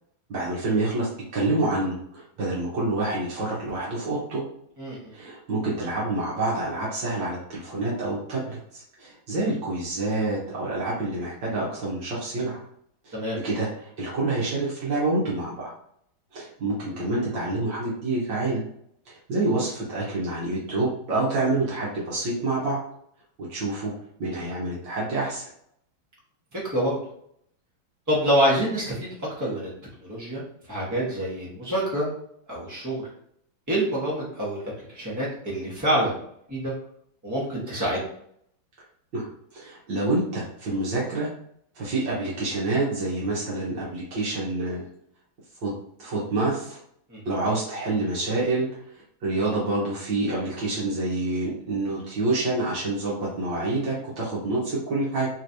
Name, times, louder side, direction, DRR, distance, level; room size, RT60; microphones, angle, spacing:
voice 1, 0.3-4.4 5.1-12.6 13.0-13.2 13.4-15.7 16.3-18.6 19.1-22.8 23.4-23.9 24.2-25.5 39.1-41.3 41.8-44.9 45.6-45.7 46.0-46.8 47.3-48.7 49.2-55.3, right 2 dB, 65° right, -6 dB, 1.8 m, -27 dB
voice 2, 26.5-27.0 28.1-29.7 30.0-32.1 32.5-33.0 33.7-34.6 34.9-36.2 36.5-36.7 37.2-38.0 47.1-47.2, right 1 dB, 15° right, -5 dB, 0.8 m, -26 dB
4.0 x 3.1 x 2.7 m, 0.68 s
omnidirectional pair, 2.2 m